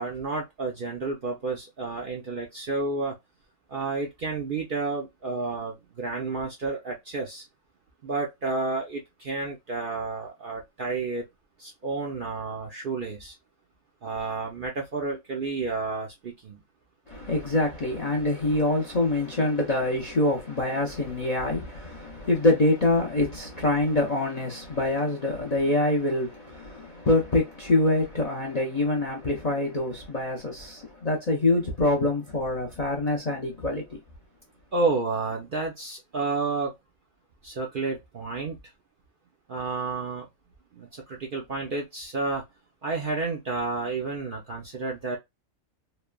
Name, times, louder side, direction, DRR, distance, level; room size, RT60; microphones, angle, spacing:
voice 1, 0.0-3.1 3.7-7.4 8.0-11.3 11.6-13.3 14.0-16.6 34.7-36.7 37.4-38.6 39.5-40.3 40.7-42.4 42.8-45.2, right 3 dB, 55° right, 0.6 m, -30 dB
voice 2, 17.1-34.0, left 2 dB, 45° left, 0.5 m, -25 dB
3.1 x 2.1 x 2.2 m
omnidirectional pair, 1.4 m